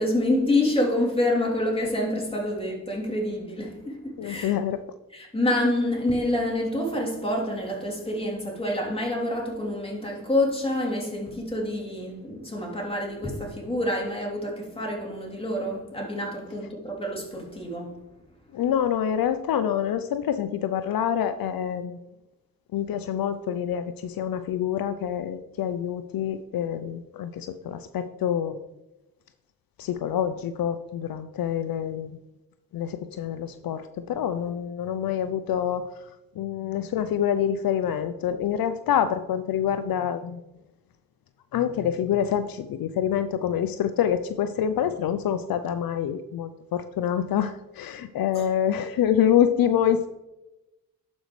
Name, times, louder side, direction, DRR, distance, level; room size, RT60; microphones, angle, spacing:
voice 1, 0.0-4.5 5.1-18.1 48.3-48.4, left 1 dB, 15° left, 3.1 m, -27 dB
voice 2, 4.2-4.8 18.5-22.0 22.7-28.6 29.8-32.2 32.7-36.1 36.4-40.4 41.5-50.1, left 9 dB, 75° left, 0.5 m, -26 dB
11.5 x 5.3 x 3.1 m
cardioid pair, 50°, 36 cm